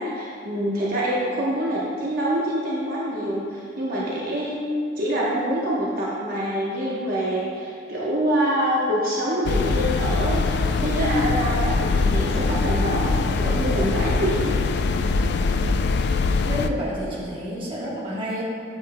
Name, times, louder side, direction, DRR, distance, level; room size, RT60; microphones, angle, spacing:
voice 1, 0.0-4.6 5.0-14.5, right 1 dB, 50° right, -6 dB, 1.0 m, -25 dB
sound 1, 9.4-16.7, left 4 dB, 60° left, 0.3 m, -22 dB
voice 2, 16.4-18.4, equal, 30° right, -6 dB, 1.3 m, -29 dB
8.9 x 7.8 x 2.2 m, 2.2 s
head